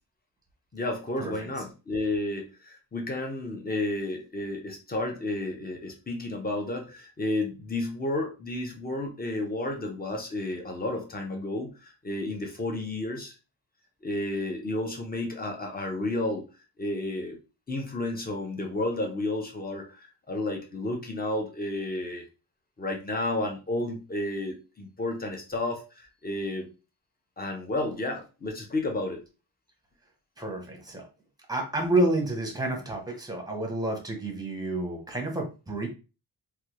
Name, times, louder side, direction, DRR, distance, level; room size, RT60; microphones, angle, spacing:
voice 1, 0.7-13.3 14.0-16.4 16.8-17.4 17.7-22.3 22.8-25.8 26.2-26.7 27.4-29.2, left 2 dB, 20° left, 2 dB, 0.6 m, -31 dB
voice 2, 30.4-31.1 31.5-35.9, right 2 dB, 10° right, 1 dB, 0.8 m, -29 dB
3.3 x 2.3 x 2.9 m, 0.31 s
wide cardioid pair, 155°, 43 cm